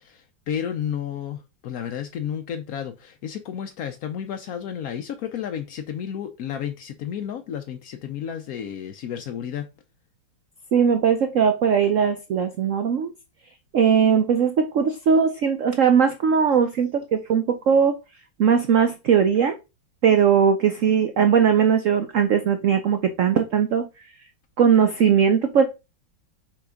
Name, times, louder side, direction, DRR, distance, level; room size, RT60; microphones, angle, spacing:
voice 1, 0.0-9.7, left 9 dB, 70° left, 0.8 m, -32 dB
voice 2, 10.7-13.1 13.7-18.0 18.4-19.6 20.0-23.8 24.6-25.6, right 7 dB, 75° right, 0.7 m, -19 dB
5.9 x 3.8 x 4.9 m
omnidirectional pair, 2.2 m